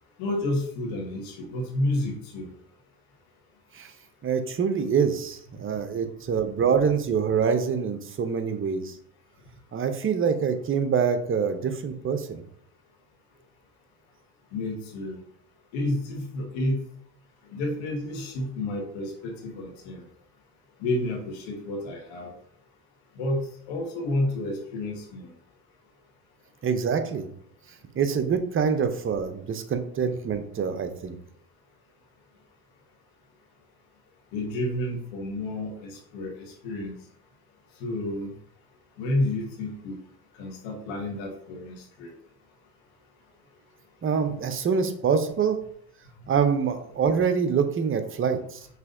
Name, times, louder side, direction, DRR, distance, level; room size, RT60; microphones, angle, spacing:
voice 1, 0.2-2.5 14.5-15.2 15.7-16.8 17.5-20.0 20.8-22.3 23.1-25.3 34.3-36.9 37.8-38.4 39.0-40.0 40.4-42.1 44.3-44.4, left 1 dB, 70° left, -1 dB, 1.5 m, -30 dB
voice 2, 4.2-9.0 9.7-12.4 26.6-27.3 27.9-31.2 44.0-45.6 46.3-48.7, right 6 dB, 25° right, 9 dB, 0.6 m, -25 dB
5.5 x 3.1 x 2.6 m, 0.64 s
hypercardioid pair, 75°, 48 cm